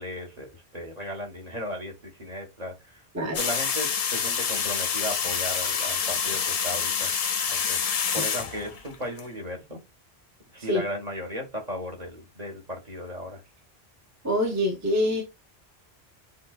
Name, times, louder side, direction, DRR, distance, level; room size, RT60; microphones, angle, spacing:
voice 1, 0.0-3.0 3.4-7.1 7.5-9.8 10.5-13.4, equal, 40° right, 1.7 m, -36 dB
sound 1, 3.3-9.2, left 6 dB, 45° left, 0.5 m, -27 dB
voice 2, 14.2-15.2, equal, 15° right, 1.0 m, -25 dB
7.4 x 2.6 x 2.4 m
omnidirectional pair, 1.1 m